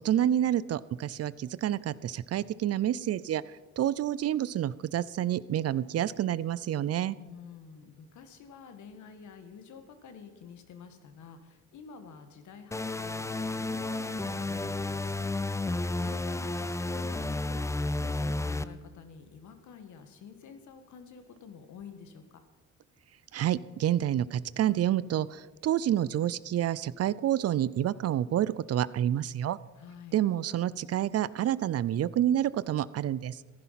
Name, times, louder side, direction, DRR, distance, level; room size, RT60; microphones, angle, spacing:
voice 1, 0.0-3.4 3.8-7.2 23.3-29.6 30.1-33.4, right 11 dB, 55° right, 19 dB, 0.5 m, -28 dB
voice 2, 7.2-15.2 16.0-22.2 29.8-30.2, left 6 dB, 75° left, 8 dB, 1.8 m, -49 dB
sound 1, 12.7-18.6, left 2 dB, 10° left, 0.5 m, -32 dB
14.5 x 11.0 x 5.8 m, 1.3 s
cardioid pair, 90°, 30 cm